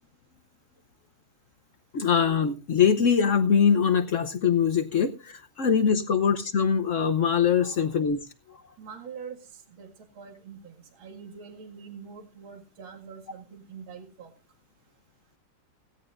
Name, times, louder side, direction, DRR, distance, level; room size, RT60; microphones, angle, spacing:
voice 1, 1.9-8.2 8.5-8.6, left 7 dB, 65° left, 10 dB, 0.7 m, -23 dB
voice 2, 8.8-14.3, right 6 dB, 65° right, 4 dB, 2.7 m, -44 dB
17.0 x 16.5 x 2.5 m, 0.30 s
omnidirectional pair, 2.4 m